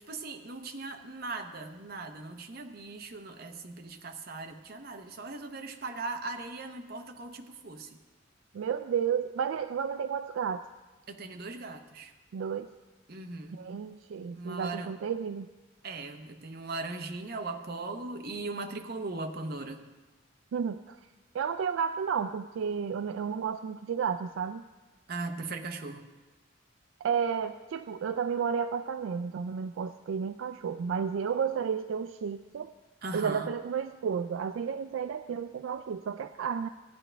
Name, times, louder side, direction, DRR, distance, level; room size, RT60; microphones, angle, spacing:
voice 1, 0.1-8.0 11.1-12.1 13.1-13.6 14.4-14.9 15.8-19.8 25.1-26.0 33.0-33.5, right 3 dB, 50° right, 5 dB, 0.8 m, -39 dB
voice 2, 8.5-10.7 12.3-12.7 13.5-15.5 20.5-21.0 21.3-24.6 27.0-32.7 33.1-36.7, right 7 dB, 75° right, 10 dB, 0.3 m, -32 dB
15.5 x 9.9 x 3.4 m, 1.2 s
head